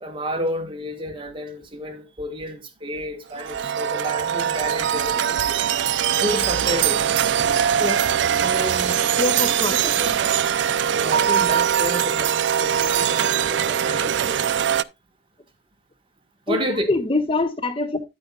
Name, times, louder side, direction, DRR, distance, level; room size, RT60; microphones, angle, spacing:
voice 1, 0.0-5.6 6.2-7.1 8.3-9.0 9.7-10.1 10.9-14.5 16.5-16.9, equal, 25° right, 1.6 m, -30 dB
sound 1, 3.3-14.8, right 8 dB, 65° right, 0.4 m, -22 dB
voice 2, 9.2-9.7 16.5-16.6 16.9-18.0, left 2 dB, 30° left, 0.7 m, -23 dB
9.8 x 8.8 x 2.4 m
head